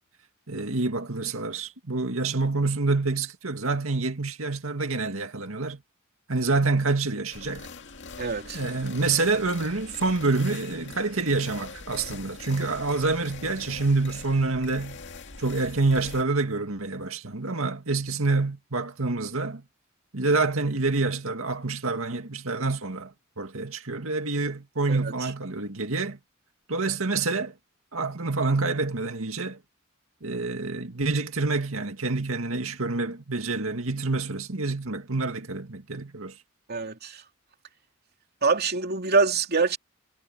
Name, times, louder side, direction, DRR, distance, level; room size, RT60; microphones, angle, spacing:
voice 1, 0.5-5.8 6.3-7.7 8.5-15.0 15.4-19.6 20.1-26.2 26.7-27.5 27.9-29.6 30.2-36.3, right 3 dB, 90° right, 2.1 m, -27 dB
sound 1, 7.3-16.2, left 4 dB, 60° left, 2.1 m, -43 dB
voice 2, 8.2-8.6 24.9-25.3 36.7-37.2 38.4-39.8, right 4 dB, 50° right, 3.0 m, -25 dB
head